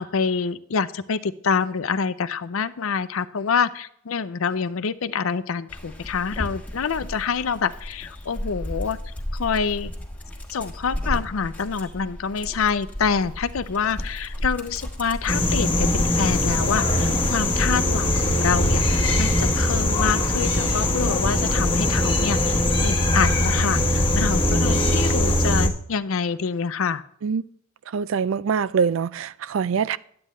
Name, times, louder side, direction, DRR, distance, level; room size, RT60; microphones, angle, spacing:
voice 1, 0.0-9.9 10.5-22.5 22.8-27.0, left 6 dB, 80° left, 0.5 m, -26 dB
Dog, 5.7-17.0, left 1 dB, 10° left, 1.4 m, -34 dB
sound 1, 15.3-25.7, left 1 dB, 25° left, 1.5 m, -21 dB
voice 2, 27.9-30.0, right 6 dB, 65° right, 0.4 m, -24 dB
10.0 x 8.7 x 3.2 m
head